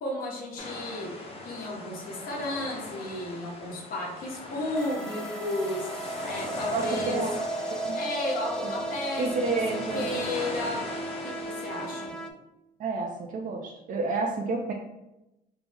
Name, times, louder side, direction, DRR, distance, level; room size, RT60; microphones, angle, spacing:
voice 1, 0.0-7.2 7.9-9.3 9.9-10.9 11.2-12.1, left 1 dB, 60° left, -1 dB, 1.1 m, -33 dB
sound 1, 0.6-12.1, left 2 dB, 35° left, 0.7 m, -40 dB
sound 2, 4.7-12.3, right 2 dB, 5° left, 0.4 m, -35 dB
voice 2, 6.7-7.3 7.7-8.0 8.6-8.7 9.2-10.1 12.0-12.1 12.8-14.7, right 3 dB, 50° right, 0 dB, 0.5 m, -30 dB
4.6 x 2.0 x 3.5 m, 0.92 s
cardioid pair, 110°, 17 cm